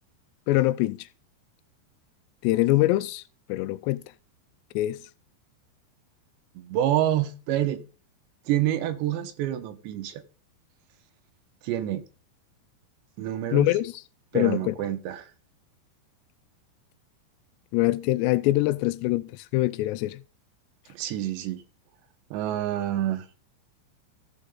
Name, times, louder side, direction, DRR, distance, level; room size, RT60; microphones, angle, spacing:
voice 1, 0.5-1.1 2.4-3.2 3.5-4.0 4.8-5.0 13.5-13.9 14.3-14.7 17.7-20.2, left 17 dB, 85° left, 2.6 m, -24 dB
voice 2, 6.6-7.8 8.5-10.2 11.6-12.0 13.2-13.7 14.3-15.3 20.9-21.6 22.3-23.3, right 12 dB, 80° right, 3.4 m, -27 dB
15.0 x 5.0 x 3.8 m
omnidirectional pair, 5.1 m